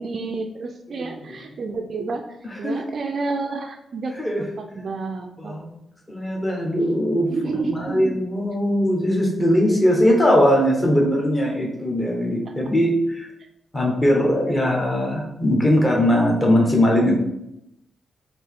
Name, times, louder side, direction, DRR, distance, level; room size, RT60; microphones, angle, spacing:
voice 1, 0.0-2.2 2.6-5.6 7.2-8.2 14.5-14.6, right 3 dB, 50° right, 5 dB, 0.4 m, -30 dB
voice 2, 5.4-5.7 6.1-7.3 7.7-13.3 13.7-17.2, equal, 15° left, -1 dB, 1.0 m, -20 dB
4.2 x 2.7 x 3.6 m, 0.83 s
wide cardioid pair, 135°, 0 cm